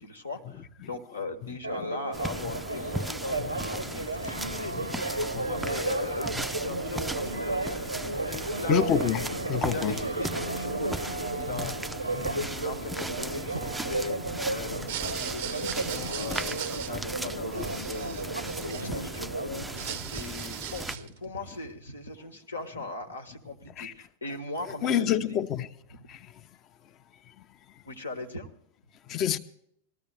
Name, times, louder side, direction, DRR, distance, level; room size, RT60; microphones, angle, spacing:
voice 1, 0.0-9.0 9.6-14.2 14.4-18.2 18.6-25.4 27.8-28.5, left 2 dB, 75° left, 1.2 m, -39 dB
Church bell, 1.6-20.0, right 2 dB, 85° right, 0.8 m, -33 dB
sound 1, 2.1-21.0, right 2 dB, 5° right, 0.4 m, -37 dB
voice 2, 4.5-5.5 6.4-6.5 7.9-8.0 8.3-8.4 8.7-10.0 11.5-11.8 12.1-12.5 14.7-14.9 15.2-15.6 17.6-17.7 23.8-23.9 24.7-25.7 26.1-26.3 29.1-29.4, left 9 dB, 35° left, 0.7 m, -30 dB
sound 2, 14.9-19.2 19.6-21.2, right 11 dB, 55° right, 0.5 m, -39 dB
20.0 x 13.5 x 3.3 m
figure-of-eight pair, 90°, 0 cm